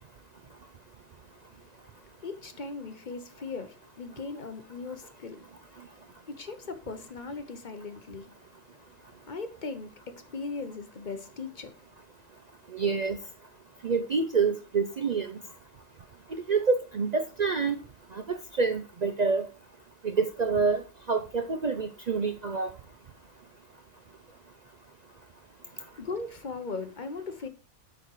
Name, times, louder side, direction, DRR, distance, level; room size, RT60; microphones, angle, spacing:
voice 1, 2.2-5.4 6.3-8.3 9.3-11.7 26.0-27.5, left 4 dB, 45° left, 0.9 m, -38 dB
voice 2, 12.7-13.2 13.8-15.4 16.3-17.8 18.1-19.5 20.0-22.7, right 4 dB, 45° right, 0.6 m, -27 dB
9.7 x 4.3 x 4.7 m
omnidirectional pair, 1.3 m